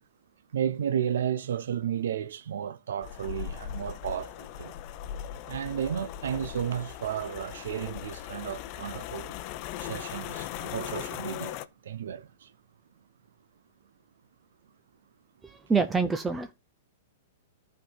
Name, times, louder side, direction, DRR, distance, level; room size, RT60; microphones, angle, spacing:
voice 1, 0.5-4.7 5.5-9.3 9.8-11.6 11.8-12.5, right 9 dB, 75° right, 0.6 m, -33 dB
sound 1, 3.0-11.6, left 11 dB, 45° left, 0.7 m, -39 dB
voice 2, 15.4-16.5, right 4 dB, 10° right, 0.6 m, -26 dB
11.5 x 4.6 x 5.5 m
hypercardioid pair, 130°, 0 cm